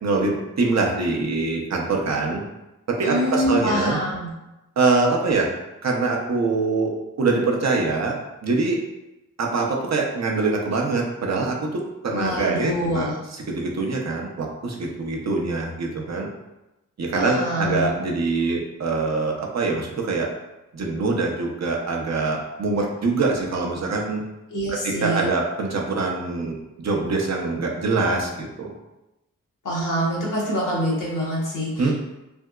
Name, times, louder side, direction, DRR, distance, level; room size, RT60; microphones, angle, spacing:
voice 1, 0.0-2.4 2.9-4.0 4.8-5.5 5.8-6.9 7.2-8.1 8.4-8.8 9.4-16.3 17.0-20.3 20.7-24.2 24.7-28.7 31.8-31.9, right 3 dB, 55° right, 0 dB, 0.7 m, -24 dB
voice 2, 3.0-4.3 12.1-13.1 17.2-17.9 24.5-25.3 29.6-31.9, equal, 70° left, -4 dB, 1.2 m, -25 dB
3.4 x 2.7 x 2.3 m, 0.97 s
cardioid pair, 50°, 32 cm